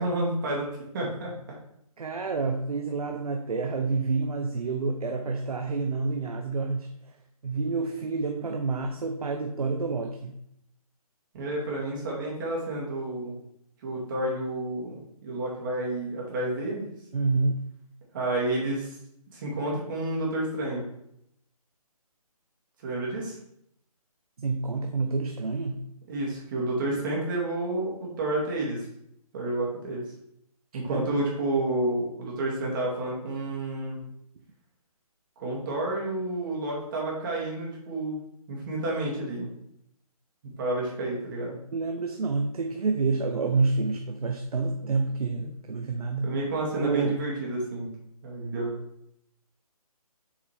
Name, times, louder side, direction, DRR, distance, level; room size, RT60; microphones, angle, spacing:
voice 1, 0.0-1.4 11.3-13.3 13.8-16.9 18.1-18.9 19.3-20.8 22.8-23.4 26.1-28.9 29.3-30.1 30.7-34.0 35.4-39.5 40.6-41.6 45.4-45.5 46.2-47.9 48.2-48.7, right 2 dB, 35° right, -4 dB, 2.4 m, -30 dB
voice 2, 2.0-6.9 7.4-10.4 17.1-17.6 24.4-25.8 30.9-31.1 41.7-46.3 46.8-47.2, right 4 dB, 70° right, 4 dB, 0.9 m, -28 dB
7.4 x 4.7 x 3.4 m, 0.75 s
hypercardioid pair, 155°, 19 cm